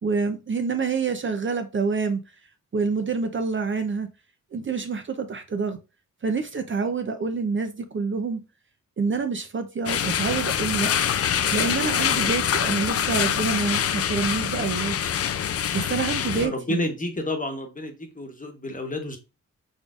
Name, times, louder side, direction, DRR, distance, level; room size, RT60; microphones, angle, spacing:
voice 1, 0.0-2.2 2.7-4.1 4.5-5.8 6.2-8.4 9.0-10.9 11.5-15.0 15.7-16.8, right 5 dB, 40° right, 0.6 m, -27 dB
sound 1, 9.9-16.5, left 9 dB, 50° left, 0.4 m, -25 dB
voice 2, 12.1-12.4 16.4-19.2, left 1 dB, 25° left, 1.1 m, -30 dB
4.1 x 3.4 x 2.4 m
cardioid pair, 60°, 31 cm